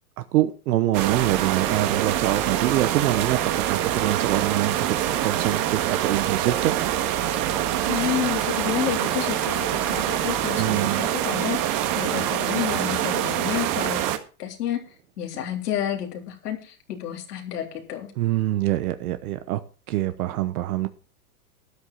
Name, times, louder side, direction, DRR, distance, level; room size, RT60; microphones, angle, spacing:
voice 1, 0.2-6.8 10.5-11.0 18.2-19.6 19.9-20.9, right 14 dB, 70° right, 1.1 m, -25 dB
sound 1, 0.9-14.2, right 11 dB, 45° right, 1.8 m, -25 dB
voice 2, 7.9-14.0 14.4-14.8 15.2-18.1, left 11 dB, 85° left, 3.8 m, -30 dB
13.0 x 10.0 x 4.1 m
supercardioid pair, 130°, 46 cm